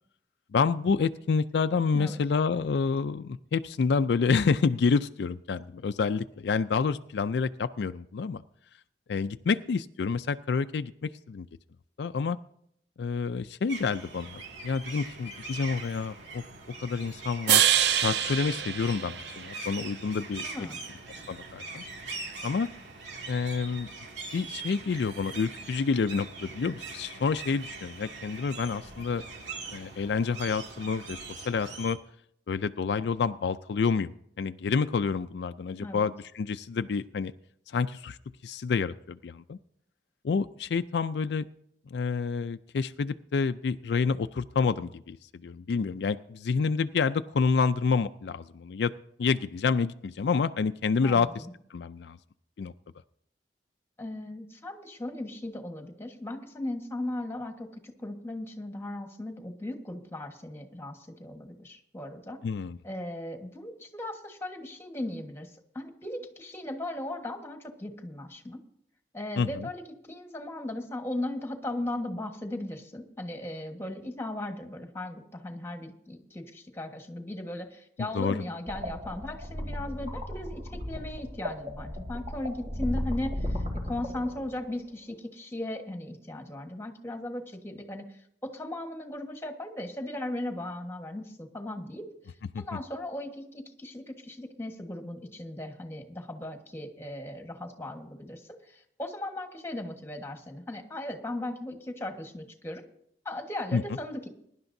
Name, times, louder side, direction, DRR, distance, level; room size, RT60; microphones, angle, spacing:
voice 1, 0.5-8.4 9.1-11.5 12.0-12.4 13.0-16.4 16.8-17.7 17.9-20.7 21.3-21.8 22.4-22.7 23.3-23.9 24.3-29.2 29.7-31.2 31.5-32.0 32.5-37.3 37.7-38.2 38.4-39.6 40.2-41.4 41.9-48.9 49.2-51.5 51.7-52.2 52.6-52.7 62.4-62.8 69.4-69.7 78.0-78.4 92.5-92.6 103.7-103.8, left 5 dB, 70° left, 11 dB, 0.4 m, -28 dB
sound 1, 13.7-31.9, right 3 dB, 90° right, 2.3 m, -42 dB
sound 2, 17.5-19.8, right 10 dB, 70° right, 0.5 m, -25 dB
voice 2, 20.4-20.8 35.8-36.1 51.0-51.5 54.0-62.4 62.8-65.5 65.7-68.6 69.1-92.0 92.6-102.8 103.2-104.3, left 1 dB, 15° left, 4 dB, 1.4 m, -37 dB
sound 3, 78.7-84.8, equal, 40° right, 2.9 m, -35 dB
21.5 x 11.0 x 2.7 m, 0.70 s
head